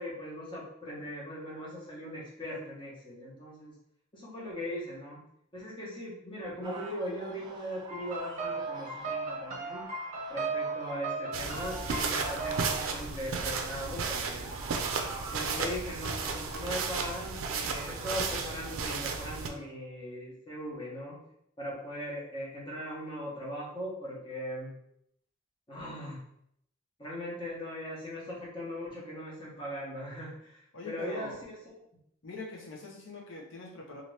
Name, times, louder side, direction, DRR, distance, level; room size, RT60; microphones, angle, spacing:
voice 1, 0.0-3.7 4.1-5.2 5.5-9.9 10.3-14.5 15.3-21.2 21.6-24.7 25.7-26.2 27.0-31.7, equal, 25° left, -5 dB, 1.0 m, -39 dB
sound 1, 6.6-18.7, right 3 dB, 20° right, 0.4 m, -46 dB
sound 2, 7.9-12.9, right 3 dB, 40° right, 0.8 m, -36 dB
sound 3, 11.3-19.5, right 5 dB, 80° right, 0.4 m, -34 dB
voice 2, 30.7-31.5 32.2-34.0, left 2 dB, 65° left, 0 dB, 0.7 m, -42 dB
2.8 x 2.5 x 3.1 m, 0.72 s
head